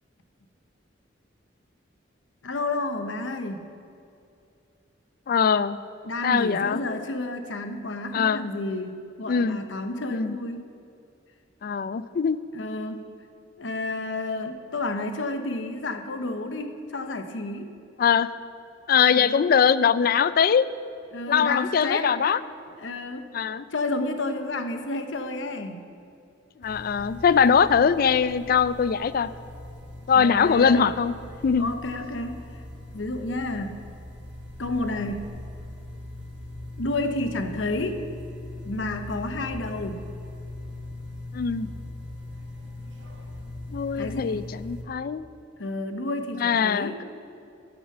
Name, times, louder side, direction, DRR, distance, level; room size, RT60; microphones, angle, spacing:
voice 1, 2.4-3.6 6.0-10.6 12.5-13.0 13.6-17.7 19.1-19.4 21.1-22.1 22.8-23.3 23.7-25.8 30.1-30.9 31.6-32.4 32.9-33.8 34.6-35.3 36.8-38.0 38.6-40.0 44.0-44.4 45.6-47.0, left 2 dB, 85° left, 7 dB, 0.9 m, -30 dB
voice 2, 5.3-5.8 6.2-6.8 8.1-8.4 9.3-9.6 10.1-10.4 11.6-12.4 18.0-18.3 18.9-20.7 21.3-22.4 23.3-23.6 26.6-29.3 30.1-31.1 31.4-31.7 41.3-41.7 43.7-45.2 46.3-47.0, left 6 dB, 50° left, 16 dB, 0.3 m, -22 dB
sound 1, 26.6-44.8, left 2 dB, 70° right, 1.5 m, -40 dB
11.0 x 6.9 x 6.7 m, 2.6 s
head